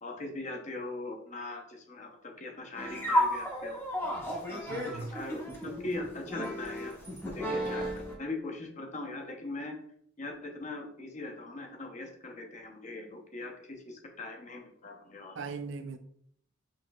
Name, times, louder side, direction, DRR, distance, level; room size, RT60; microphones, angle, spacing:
voice 1, 0.0-3.9 4.5-9.7 10.2-15.4, left 2 dB, 35° left, 0.8 m, -41 dB
sound 1, 2.7-8.1, equal, 10° left, 1.0 m, -33 dB
voice 2, 4.7-5.1 15.4-16.0, right 4 dB, 65° right, 0.4 m, -39 dB
6.3 x 3.0 x 2.3 m
head